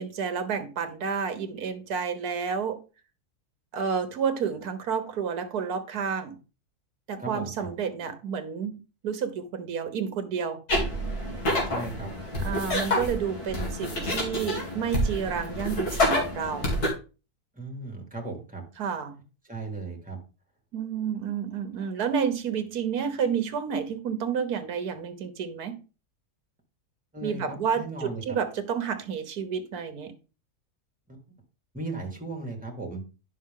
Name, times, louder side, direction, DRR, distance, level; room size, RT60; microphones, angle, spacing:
voice 1, 0.0-2.8 3.7-6.4 7.1-10.6 12.4-16.7 18.8-19.2 20.7-25.8 27.2-30.1, right 7 dB, 75° right, 1.7 m, -30 dB
voice 2, 7.2-7.7 11.7-12.1 17.6-18.6 19.5-20.2 27.1-28.2 31.1-31.2 31.7-33.0, right 2 dB, 5° right, 2.2 m, -36 dB
sound 1, 10.7-16.9, left 1 dB, 75° left, 2.9 m, -28 dB
10.5 x 6.3 x 3.7 m
omnidirectional pair, 1.7 m